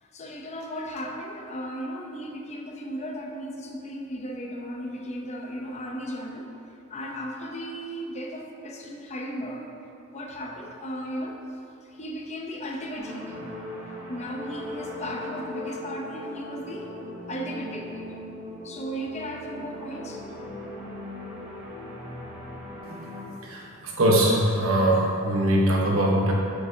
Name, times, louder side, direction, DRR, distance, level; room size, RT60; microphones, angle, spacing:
voice 1, 0.0-6.5 6.9-9.7 10.1-11.4 11.8-13.5 14.1-16.9 17.3-18.2 18.6-20.3, equal, 30° left, 1 dB, 0.7 m, -36 dB
sound 1, 13.0-23.2, left 1 dB, 15° right, 1.1 m, -39 dB
voice 2, 23.4-26.3, right 1 dB, 70° right, -3 dB, 1.1 m, -22 dB
7.0 x 6.7 x 2.7 m, 2.6 s
head